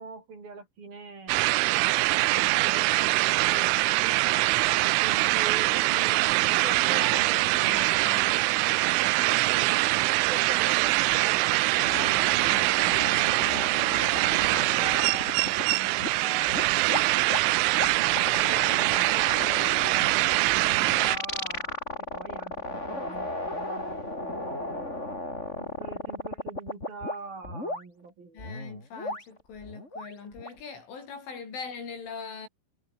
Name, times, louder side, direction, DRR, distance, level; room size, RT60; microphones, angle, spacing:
voice 1, 0.0-1.5 2.0-3.7 4.7-7.4 8.7-9.8 10.3-17.0 17.9-24.9 25.6-28.5, right 4 dB, 50° right, 8.4 m, -42 dB
sound 1, 1.3-21.2, right 21 dB, 90° right, 3.1 m, -24 dB
voice 2, 6.8-8.3 28.3-32.5, left 5 dB, 90° left, 9.6 m, -41 dB
sound 2, 11.8-16.1 16.4-27.1 27.4-27.8 28.4-30.6, left 1 dB, 15° left, 7.4 m, -35 dB
omnidirectional pair, 5.4 m